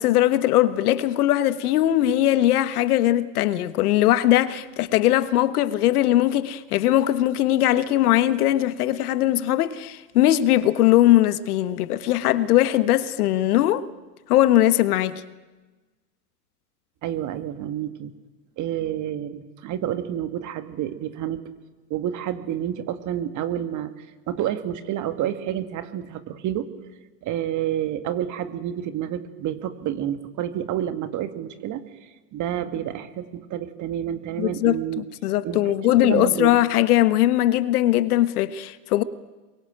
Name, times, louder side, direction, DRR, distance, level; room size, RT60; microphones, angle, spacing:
voice 1, 0.0-13.8 14.3-15.2 34.4-39.0, left 14 dB, 65° left, 1.4 m, -20 dB
voice 2, 17.0-18.1 18.6-21.4 21.9-26.7 27.2-31.8 32.3-35.0 35.4-35.6 35.9-36.6, right 11 dB, 35° right, 2.1 m, -29 dB
27.0 x 23.0 x 9.1 m
hypercardioid pair, 105°, 49 cm